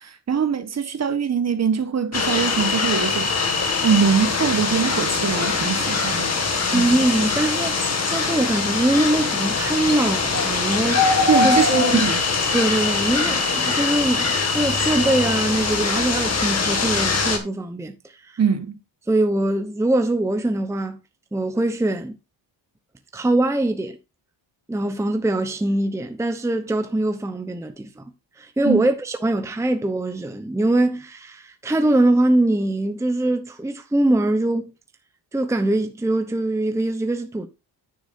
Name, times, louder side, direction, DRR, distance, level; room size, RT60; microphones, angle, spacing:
voice 1, 0.0-3.3 3.8-6.3 6.7-6.9 11.3-12.2 18.4-18.8 28.6-28.9, right 6 dB, 35° right, 1.3 m, -22 dB
sound 1, 2.1-17.4, left 4 dB, 35° left, 2.2 m, -22 dB
voice 2, 6.7-12.0 12.5-18.4 19.1-21.0 21.3-22.1 23.1-24.0 24.7-28.0 28.4-34.7 35.3-37.5, right 1 dB, 5° right, 0.8 m, -22 dB
10.5 x 9.7 x 2.7 m
wide cardioid pair, 150°, 43 cm